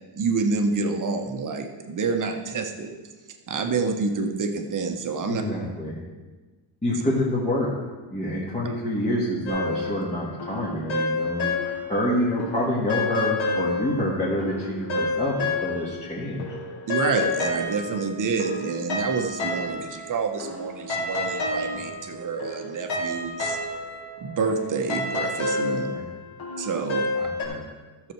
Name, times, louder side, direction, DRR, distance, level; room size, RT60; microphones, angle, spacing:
voice 1, 0.1-2.9 3.5-5.4 16.9-23.6 24.2-25.9 26.6-27.0, right 4 dB, 40° right, 5 dB, 1.2 m, -28 dB
voice 2, 5.3-6.0 6.8-7.7 8.1-16.5 25.7-26.0 27.1-27.6, left 1 dB, 15° left, -8 dB, 1.9 m, -27 dB
sound 1, 9.5-12.1 12.4-16.1 16.4-27.4, left 2 dB, 75° left, 2.8 m, -29 dB
13.5 x 7.1 x 4.6 m, 1.3 s
cardioid pair, 140°, 48 cm